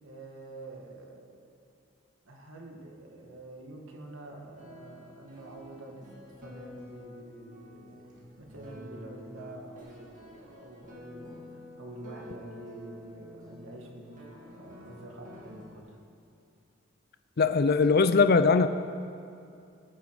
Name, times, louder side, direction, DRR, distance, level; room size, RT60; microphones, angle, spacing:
voice 1, 0.0-1.6 2.3-8.0 8.4-16.0, right 2 dB, 75° right, 0 dB, 1.9 m, -47 dB
sound 1, 4.6-15.8, left 1 dB, 40° right, 2.2 m, -49 dB
voice 2, 17.4-18.7, left 4 dB, 50° left, 10 dB, 0.5 m, -21 dB
20.5 x 9.1 x 4.9 m, 2.5 s
head